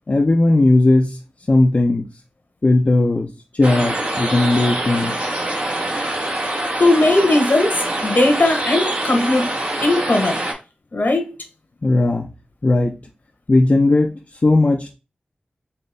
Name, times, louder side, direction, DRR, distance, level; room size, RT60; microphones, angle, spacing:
voice 1, 0.1-1.2 1.5-2.1 2.6-3.3 3.5-5.1 11.8-12.3 12.6-12.9 13.5-14.9, left 2 dB, 50° left, 0.6 m, -16 dB
sound 1, 3.6-10.5, right 1 dB, 70° right, 1.7 m, -24 dB
voice 2, 6.8-9.5 9.8-10.3 10.9-11.2, left 2 dB, 65° left, 1.2 m, -17 dB
4.3 x 2.8 x 3.4 m
cardioid pair, 45°, 3 cm